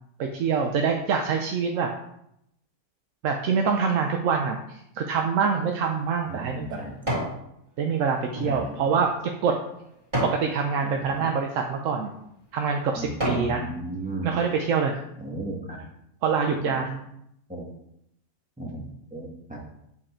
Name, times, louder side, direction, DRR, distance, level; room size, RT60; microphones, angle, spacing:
voice 1, 0.2-1.9 3.2-6.7 7.8-9.6 10.2-12.1 12.5-13.7 14.2-15.0 16.2-16.9, right 6 dB, 65° right, 3 dB, 0.9 m, -25 dB
sound 1, 5.5-7.4 7.9-10.5 11.1-11.3 12.0-12.2 12.7-13.5 14.0-14.1, equal, 30° right, 2.5 m, -32 dB
voice 2, 6.3-6.9 8.4-8.7 10.8-10.9 13.0-14.3 15.2-15.8 16.5-17.0 17.5-17.6 18.6-19.6, right 1 dB, 5° right, -1 dB, 1.1 m, -35 dB
7.6 x 4.1 x 4.3 m, 0.78 s
omnidirectional pair, 1.6 m